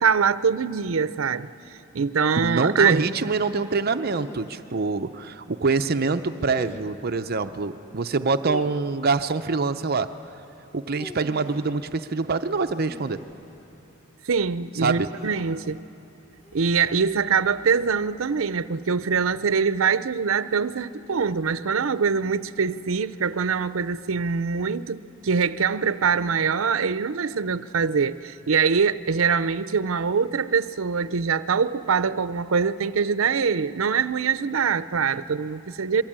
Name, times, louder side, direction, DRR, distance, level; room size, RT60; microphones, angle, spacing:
voice 1, 0.0-1.5 1.9-3.0 14.2-15.8 16.5-36.0, right 6 dB, 90° right, 0.6 m, -23 dB
voice 2, 2.4-10.1 10.7-13.2 14.8-15.1, right 4 dB, 50° right, 0.6 m, -25 dB
sound 1, 4.1-4.6 6.4-7.1 8.4-9.2 10.7-11.8 12.6-13.8 15.1-15.7 16.4-16.7 18.0-18.5 19.7-20.1, left 1 dB, 35° left, 1.0 m, -42 dB
27.0 x 23.0 x 8.8 m
head